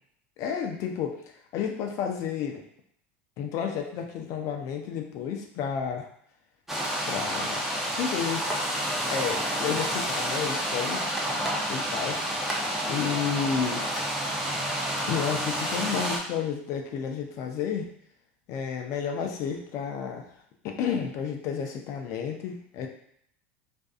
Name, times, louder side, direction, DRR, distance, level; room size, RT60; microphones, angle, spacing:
voice 1, 0.4-1.2 1.5-2.6 3.4-6.1 7.1-7.6 8.0-8.5 9.1-11.1 11.7-12.2 12.9-13.9 15.1-17.9 18.5-20.3 20.6-22.9, left 7 dB, 55° left, 3 dB, 0.5 m, -31 dB
sound 1, 6.7-16.2, equal, 5° right, 0.6 m, -29 dB
2.6 x 2.3 x 2.4 m, 0.68 s
supercardioid pair, 100°, 6 cm